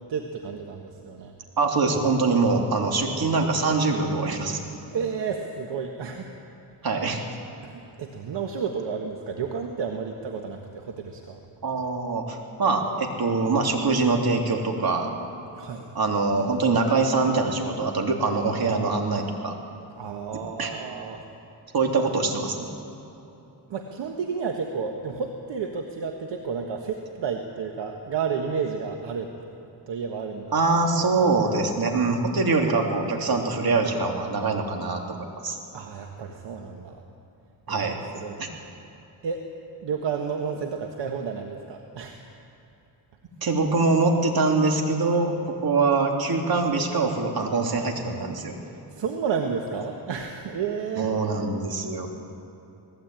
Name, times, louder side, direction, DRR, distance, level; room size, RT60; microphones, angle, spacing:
voice 1, 0.1-1.3 4.9-6.3 7.6-11.4 15.5-15.9 20.0-21.2 23.7-29.3 29.9-30.6 35.7-37.0 37.7-37.9 38.1-38.5 39.2-39.4 39.8-42.2 48.6-51.1, right 6 dB, 75° right, 3 dB, 1.5 m, -31 dB
voice 2, 1.6-4.6 6.8-7.2 11.6-15.1 15.9-19.5 20.6-20.7 21.7-22.7 30.5-35.6 37.7-38.0 38.4-38.5 43.4-45.3 45.6-48.5 51.0-52.1, right 3 dB, 55° right, 2 dB, 3.1 m, -23 dB
19.0 x 16.0 x 9.0 m, 2.9 s
cardioid pair, 90°, 43 cm